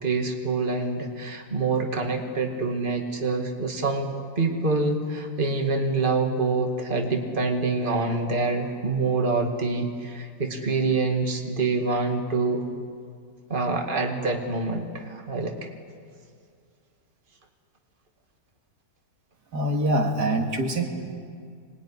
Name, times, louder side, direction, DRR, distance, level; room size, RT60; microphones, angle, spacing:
voice 1, 0.0-12.7 13.5-15.7, right 3 dB, 30° right, 4 dB, 2.3 m, -26 dB
voice 2, 19.5-20.8, right 1 dB, 80° right, 3 dB, 2.7 m, -24 dB
25.5 x 21.0 x 9.9 m, 2.2 s
omnidirectional pair, 1.7 m